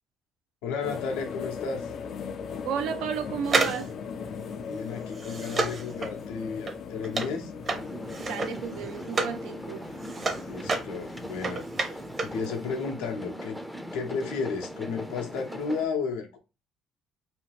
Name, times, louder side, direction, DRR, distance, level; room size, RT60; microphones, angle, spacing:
voice 1, 0.6-1.9 4.6-7.5 10.4-13.6 13.9-16.4, left 5 dB, 85° left, 0.7 m, -33 dB
sound 1, 0.8-11.6, left 6 dB, 55° left, 0.4 m, -39 dB
voice 2, 2.6-4.0 8.2-9.9, right 8 dB, 75° right, 0.4 m, -33 dB
sound 2, 3.4-9.4 9.8-12.4 12.7-12.8, right 3 dB, 40° right, 0.7 m, -31 dB
sound 3, 7.7-15.9, equal, ahead, 0.4 m, -40 dB
2.8 x 2.3 x 3.3 m
supercardioid pair, 65°, 0 cm